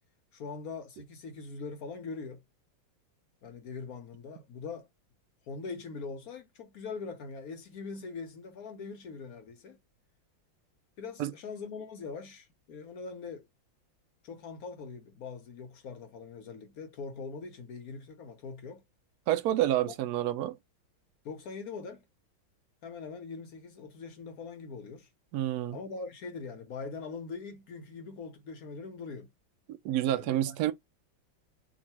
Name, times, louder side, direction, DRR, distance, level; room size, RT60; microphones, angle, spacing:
voice 1, 0.3-2.4 3.4-4.9 5.5-9.8 11.0-13.5 14.2-18.8 19.9-20.0 21.2-22.0 22.8-25.1 25.7-29.3 30.1-30.5, left 4 dB, 65° left, 0.9 m, -42 dB
voice 2, 19.3-20.6 25.3-25.8 29.8-30.7, right 13 dB, 75° right, 0.9 m, -28 dB
3.7 x 2.4 x 4.3 m
omnidirectional pair, 2.2 m